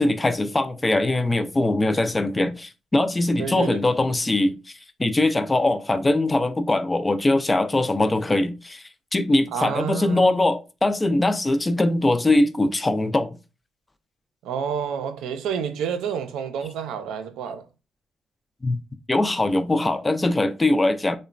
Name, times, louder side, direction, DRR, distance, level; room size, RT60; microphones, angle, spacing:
voice 1, 0.0-13.4 18.6-18.8 19.1-21.2, left 2 dB, 20° left, 0.3 m, -22 dB
voice 2, 3.4-3.8 9.5-10.3 14.4-17.7, right 7 dB, 90° right, 0.4 m, -29 dB
2.9 x 2.1 x 2.4 m
cardioid pair, 90°, 0 cm